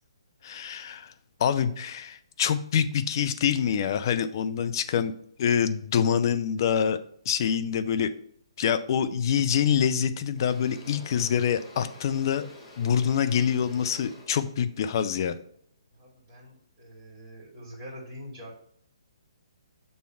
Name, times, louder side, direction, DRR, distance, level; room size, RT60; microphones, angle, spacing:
voice 1, 0.4-1.1 1.4-5.1 5.4-7.0 7.3-8.1 8.6-12.5 12.8-15.4, left 8 dB, 45° left, 10 dB, 0.6 m, -25 dB
Engine / Drill, 9.4-9.6 10.0-16.1, left 1 dB, 15° left, 1.4 m, -50 dB
voice 2, 15.9-18.5, equal, 15° right, -4 dB, 2.3 m, -44 dB
6.8 x 3.2 x 5.9 m, 0.65 s
hypercardioid pair, 145°, 3 cm